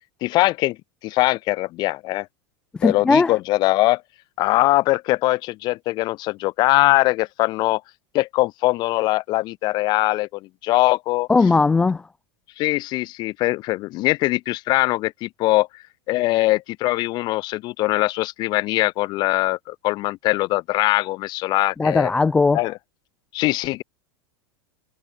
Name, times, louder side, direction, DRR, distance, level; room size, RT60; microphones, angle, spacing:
voice 1, 0.2-0.8 1.0-2.3 2.8-4.0 4.4-7.8 8.1-11.3 12.6-15.7 16.1-22.1 22.5-22.8 23.3-23.8, left 19 dB, 30° left, 0.7 m, -21 dB
voice 2, 2.8-3.4 11.3-12.0 21.8-22.6, left 4 dB, 5° left, 0.3 m, -18 dB
supercardioid pair, 165°, 14 cm